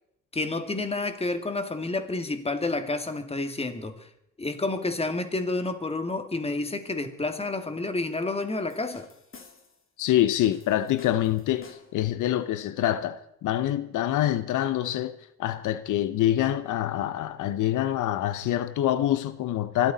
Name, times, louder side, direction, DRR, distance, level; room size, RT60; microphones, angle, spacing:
voice 1, 0.3-4.1 4.4-9.1, left 2 dB, 20° left, 2.2 m, -29 dB
sound 1, 8.7-9.9 10.5-12.1, left 5 dB, 45° left, 2.9 m, -51 dB
voice 2, 10.0-19.9, left 12 dB, 80° left, 0.8 m, -26 dB
24.5 x 13.0 x 4.1 m
cardioid pair, 90°, 30 cm